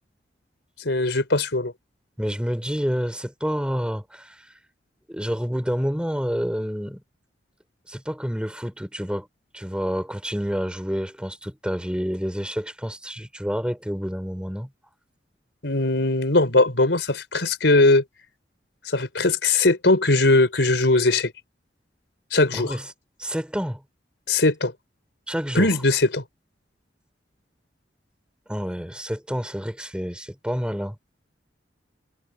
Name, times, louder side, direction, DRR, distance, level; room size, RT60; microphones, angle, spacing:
voice 1, 0.8-1.7 15.6-18.0 18.9-21.3 22.3-22.8 24.3-24.7 25.5-26.2, left 2 dB, 85° left, 4.1 m, -20 dB
voice 2, 2.2-4.4 5.1-7.0 7.9-9.3 9.5-14.7 22.5-22.9 23.2-23.8 25.3-25.7 28.5-31.0, equal, 5° right, 4.8 m, -28 dB
head